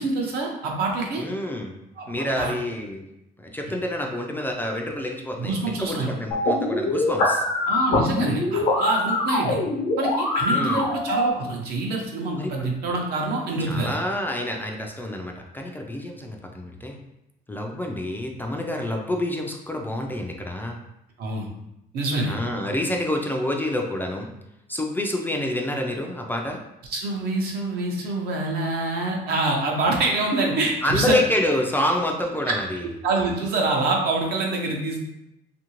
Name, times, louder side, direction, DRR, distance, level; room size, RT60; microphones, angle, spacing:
voice 1, 0.0-1.2 2.0-2.5 3.7-3.8 5.4-6.1 7.7-9.6 10.0-13.9 21.2-21.5 21.9-22.4 26.9-31.1 32.4-32.5 33.0-35.0, right 2 dB, 70° right, 0 dB, 0.7 m, -26 dB
voice 2, 1.2-1.7 2.1-3.1 3.4-7.4 10.5-10.8 12.3-12.7 13.7-17.0 17.5-20.8 22.3-24.3 24.7-26.6 30.8-32.8, left 1 dB, 10° left, 1 dB, 0.3 m, -27 dB
sound 1, 6.3-11.3, left 2 dB, 80° left, 0.8 m, -23 dB
2.7 x 2.5 x 3.0 m, 0.85 s
cardioid pair, 110°, 17 cm